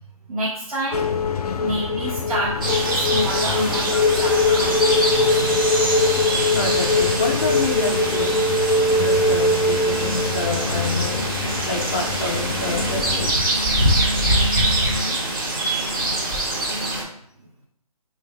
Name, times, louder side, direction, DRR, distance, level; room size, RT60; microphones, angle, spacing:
voice 1, 0.3-1.2 1.5-4.7 14.9-15.5, right 1 dB, 70° right, -5 dB, 0.8 m, -29 dB
sound 1, 0.9-13.3, left 3 dB, 85° left, 0.4 m, -22 dB
sound 2, 2.6-17.0, right 1 dB, 35° right, 0.7 m, -24 dB
voice 2, 6.5-8.5 8.9-11.2 11.7-13.3, left 2 dB, 25° left, 2 dB, 0.4 m, -27 dB
3.2 x 2.6 x 3.1 m, 0.68 s
figure-of-eight pair, 155°, 19 cm